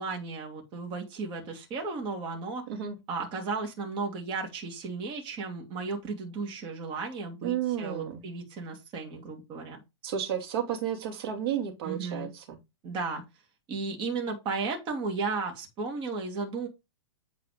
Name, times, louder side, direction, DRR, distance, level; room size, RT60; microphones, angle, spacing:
voice 1, 0.0-2.6 3.1-9.8 11.8-12.3 12.8-13.2 13.7-16.7, right 4 dB, 30° right, 2.8 m, -34 dB
voice 2, 7.4-8.2 10.0-12.6, right 9 dB, 55° right, 2.7 m, -32 dB
8.7 x 4.1 x 5.2 m
hypercardioid pair, 120°, 15 cm